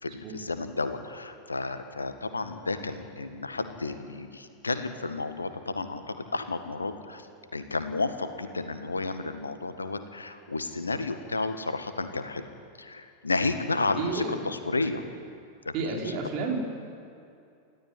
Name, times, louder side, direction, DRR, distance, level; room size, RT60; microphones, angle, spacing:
voice 1, 0.0-7.3 7.5-12.5 12.8-15.0 15.7-16.2, left 3 dB, 80° left, 8 dB, 1.7 m, -32 dB
voice 2, 14.0-14.4 15.7-16.6, right 4 dB, 40° right, -1 dB, 5.0 m, -31 dB
28.5 x 13.5 x 9.8 m, 2.5 s
figure-of-eight pair, 90°, 0 cm